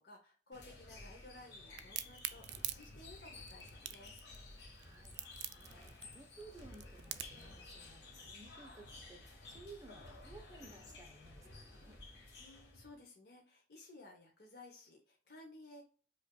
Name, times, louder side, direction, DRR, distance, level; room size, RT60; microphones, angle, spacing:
voice 1, 0.0-2.5 2.7-4.2 12.4-15.8, left 2 dB, 60° left, -1 dB, 0.8 m, -56 dB
sound 1, 0.5-13.0, left 2 dB, 90° left, 1.4 m, -54 dB
Crack, 1.8-7.5, right 12 dB, 75° right, 0.4 m, -44 dB
voice 2, 4.7-5.1 5.5-12.0, right 3 dB, 20° right, 2 dB, 0.7 m, -57 dB
5.1 x 2.6 x 2.2 m, 0.39 s
head